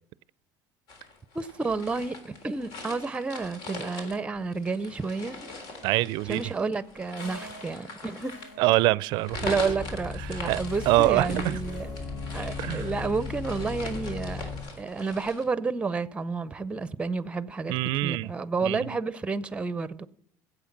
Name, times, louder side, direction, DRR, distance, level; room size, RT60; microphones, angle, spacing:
sound 1, 0.9-15.4, left 3 dB, 70° left, 3.6 m, -42 dB
voice 1, 1.3-5.5 6.2-8.3 9.4-11.9 12.3-14.5 14.8-20.1, right 4 dB, 15° right, 0.6 m, -30 dB
voice 2, 5.8-6.4 8.6-9.5 10.3-10.6 10.9-11.6 12.6-12.9 17.7-18.3 18.6-19.0, right 19 dB, 70° right, 0.4 m, -25 dB
sound 2, 7.2-12.3, equal, 85° left, 6.0 m, -50 dB
sound 3, 9.3-14.6, left 4 dB, 50° left, 4.8 m, -36 dB
15.5 x 8.1 x 5.9 m
cardioid pair, 130°, 8 cm